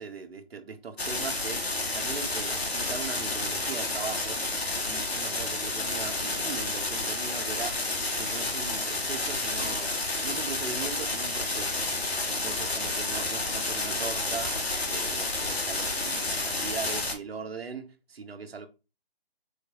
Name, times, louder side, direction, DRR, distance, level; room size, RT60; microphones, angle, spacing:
voice 1, 0.0-1.6 1.9-4.4 4.8-7.8 8.2-9.9 10.2-11.8 12.3-14.6 14.8-18.7, right 5 dB, 75° right, 0.8 m, -39 dB
sound 1, 1.0-17.1, left 2 dB, 90° left, 1.3 m, -30 dB
4.3 x 3.3 x 2.4 m
figure-of-eight pair, 150°, 31 cm